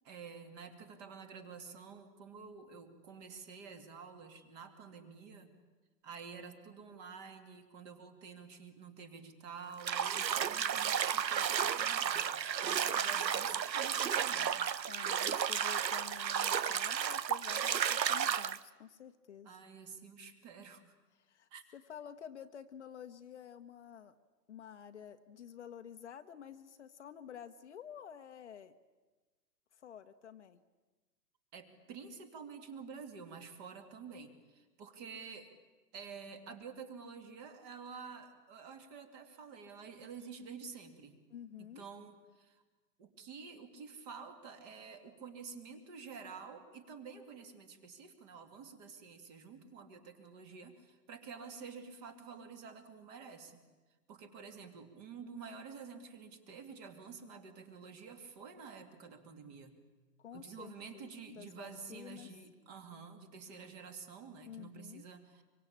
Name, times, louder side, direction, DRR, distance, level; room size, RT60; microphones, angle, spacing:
voice 1, 0.0-5.6 6.0-12.3 12.6-14.6 19.4-20.8 21.5-21.6 31.5-35.5 35.9-41.2 41.6-42.6 43.0-53.6 54.1-59.8 60.3-65.4, right 5 dB, 25° right, 7 dB, 2.4 m, -50 dB
Bathtub (filling or washing), 9.8-18.6, right 8 dB, 90° right, 1.1 m, -33 dB
voice 2, 12.9-13.3 14.9-19.6 21.2-24.2 24.5-28.7 29.7-30.6 41.3-41.8 60.2-62.3 63.5-63.7 64.5-65.0, left 8 dB, 45° left, 8 dB, 1.2 m, -51 dB
25.0 x 24.0 x 8.8 m, 1.2 s
hypercardioid pair, 160°, 49 cm